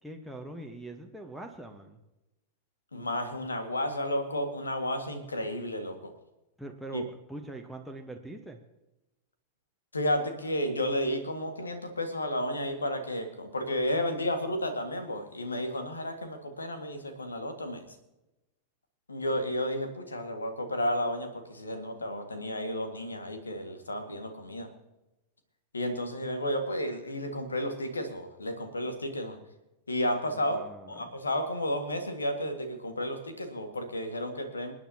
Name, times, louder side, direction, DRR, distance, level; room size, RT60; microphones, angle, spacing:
voice 1, 0.0-2.0 6.6-8.6 30.3-31.1, right 1 dB, ahead, 6 dB, 1.3 m, -43 dB
voice 2, 2.9-6.1 6.9-7.0 9.9-17.9 19.1-24.7 25.7-29.4 29.9-30.6 30.9-34.7, left 1 dB, 75° left, 7 dB, 1.9 m, -32 dB
27.0 x 9.5 x 2.9 m, 0.97 s
figure-of-eight pair, 90°, 0 cm